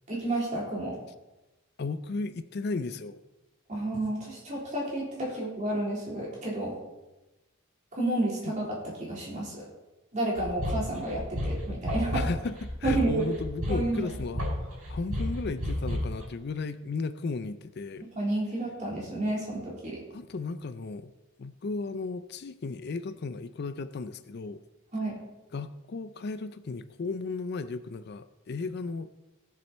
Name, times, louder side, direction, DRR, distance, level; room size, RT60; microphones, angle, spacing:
voice 1, 0.1-1.0 3.7-6.7 7.9-9.6 10.1-12.3 12.8-13.3 13.7-14.1 18.2-20.0 24.9-25.2, right 2 dB, 35° right, -4 dB, 3.7 m, -31 dB
voice 2, 1.8-3.2 8.5-8.6 12.1-18.1 20.1-21.1 21.4-24.6 25.5-29.1, left 3 dB, 50° left, 12 dB, 0.4 m, -35 dB
sound 1, 10.4-16.2, left 1 dB, 85° right, 4.5 m, -31 dB
16.5 x 7.5 x 4.2 m, 1.0 s
head